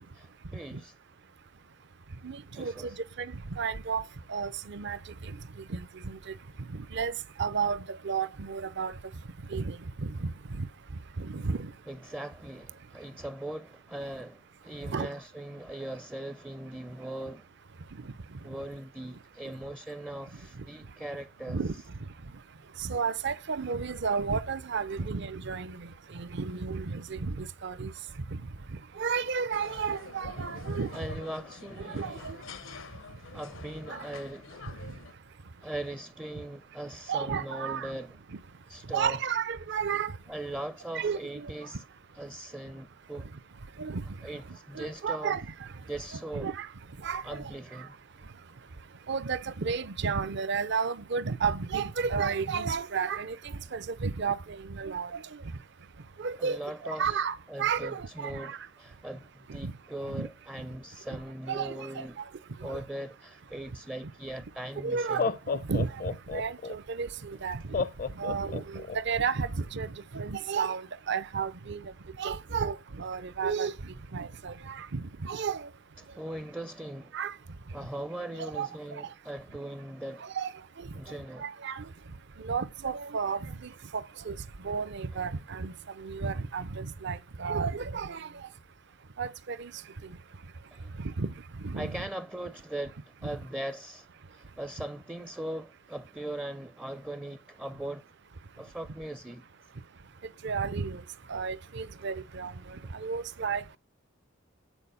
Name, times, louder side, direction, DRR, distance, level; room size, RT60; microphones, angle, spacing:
voice 1, 0.1-0.9 2.6-3.0 11.9-17.5 18.4-21.6 30.9-32.2 33.3-34.6 35.6-38.2 38.7-39.2 40.3-41.8 42.1-43.3 44.2-45.4 45.9-46.5 47.2-48.0 56.4-57.2 57.5-62.2 62.6-65.3 76.0-77.2 77.7-80.3 80.9-81.5 90.7-90.9 91.7-98.1 98.6-99.5, right 1 dB, 5° right, 0.4 m, -40 dB
voice 2, 2.2-4.0 4.3-5.0 5.2-5.3 5.7-6.2 6.7-8.9 9.5-10.3 10.6-10.7 11.2-11.7 14.9-15.1 21.5-21.7 22.8-27.9 28.3-28.4 29.0-31.2 31.8-32.4 34.9-35.0 37.1-37.9 38.9-40.1 40.9-41.5 43.8-44.0 44.8-45.5 46.3-46.7 47.0-47.5 49.1-53.4 53.7-55.2 56.2-58.6 59.6-59.7 60.1-60.3 61.5-62.0 62.6-62.8 64.8-67.6 68.2-71.9 72.2-75.7 77.1-77.3 78.5-78.7 80.2-80.5 80.8-80.9 81.4-81.9 82.4-84.4 84.6-88.3 89.2-89.7 91.0-91.3 91.6-92.0 93.2-93.3 100.4-101.0 101.3-102.5 102.9-103.6, right 5 dB, 60° right, 0.6 m, -32 dB
sound 1, 29.5-35.1, left 4 dB, 85° left, 0.8 m, -46 dB
Laughter, 64.3-64.4 65.0-66.7 67.7-69.0, left 5 dB, 45° left, 0.5 m, -31 dB
9.0 x 4.4 x 5.6 m
head